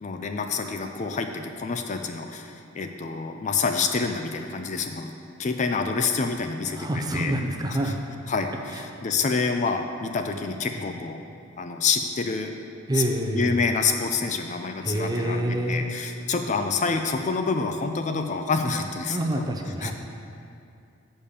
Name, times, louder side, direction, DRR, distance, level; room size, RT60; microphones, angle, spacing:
voice 1, 0.0-5.1 5.4-7.3 7.8-7.9 8.3-11.2 11.6-12.5 12.9-13.0 13.3-19.5 19.8-19.9, left 4 dB, 35° left, 6 dB, 0.4 m, -27 dB
voice 2, 6.7-8.0 8.7-8.8 12.9-13.6 14.8-15.9 19.1-19.9, right 1 dB, 20° right, 3 dB, 0.6 m, -27 dB
7.1 x 5.3 x 6.6 m, 2.5 s
head